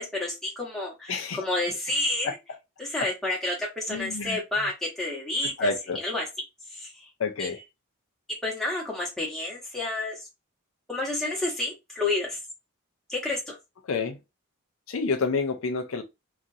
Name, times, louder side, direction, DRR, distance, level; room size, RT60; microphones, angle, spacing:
voice 1, 0.0-2.4 2.8-6.2 6.7-7.1 7.4-7.5 8.4-10.2 10.9-12.4 13.1-13.6, left 2 dB, ahead, 1.0 m, -30 dB
voice 2, 1.1-1.4 3.9-4.4 5.6-6.0 7.2-7.6 13.9-14.2 14.9-16.0, left 4 dB, 70° left, 0.5 m, -28 dB
2.9 x 2.5 x 2.6 m
head